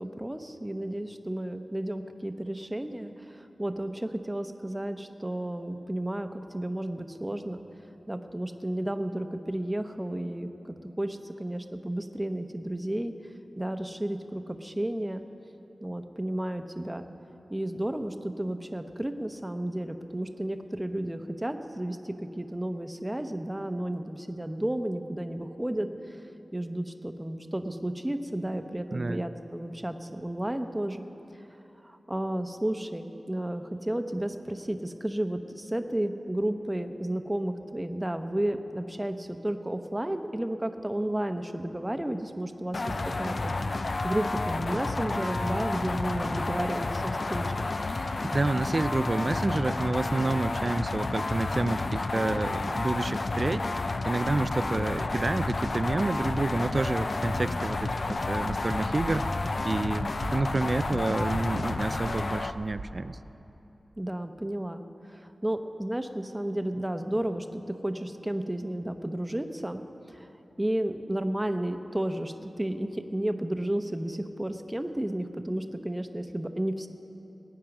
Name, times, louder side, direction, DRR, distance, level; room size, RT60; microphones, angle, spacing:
voice 1, 0.0-7.6 8.1-10.5 11.0-13.1 13.6-15.2 15.8-17.0 17.5-25.9 26.5-31.0 31.8-43.5 44.0-47.7 64.0-64.8 65.1-69.8 70.1-70.3 70.6-76.9, right 1 dB, 15° right, 7 dB, 0.9 m, -32 dB
sound 1, 42.7-62.5, left 3 dB, 60° left, 0.5 m, -30 dB
Cheering / Applause / Crowd, 45.0-52.5, left 1 dB, 85° left, 4.0 m, -52 dB
voice 2, 48.2-53.7 54.0-59.3 59.6-63.2, right 2 dB, 45° right, 14 dB, 0.4 m, -29 dB
sound 2, 58.4-62.8, right 2 dB, 90° right, 0.9 m, -44 dB
20.0 x 9.2 x 6.0 m, 3.0 s
cardioid pair, 50°, 0 cm